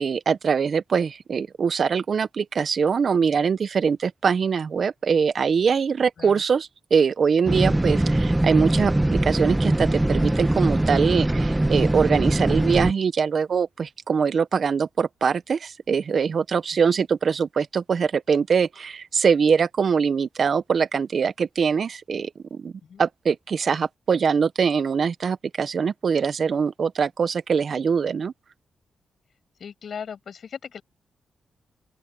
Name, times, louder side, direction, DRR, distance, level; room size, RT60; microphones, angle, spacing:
voice 1, 0.0-22.7 23.0-28.3, right 6 dB, 65° right, 1.1 m, -23 dB
sound 1, 7.5-12.9, right 1 dB, 15° right, 1.2 m, -22 dB
voice 2, 29.6-30.8, left 7 dB, 70° left, 7.3 m, -37 dB
open air
supercardioid pair, 50°, 0 cm